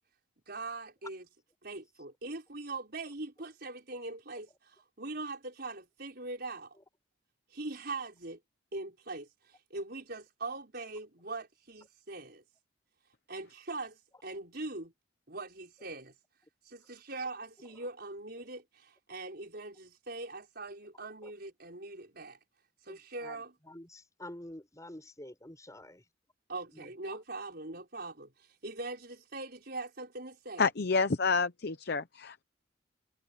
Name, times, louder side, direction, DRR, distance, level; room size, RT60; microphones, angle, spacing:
voice 1, 0.5-1.2 1.6-6.8 7.5-8.4 8.7-12.4 13.3-14.9 15.3-16.1 16.6-22.4 22.8-23.5 26.5-30.7, right 3 dB, 55° right, 5.8 m, -42 dB
voice 2, 22.9-26.1 26.7-27.2, left 1 dB, 15° left, 5.7 m, -49 dB
voice 3, 30.6-32.4, left 4 dB, 55° left, 0.7 m, -29 dB
head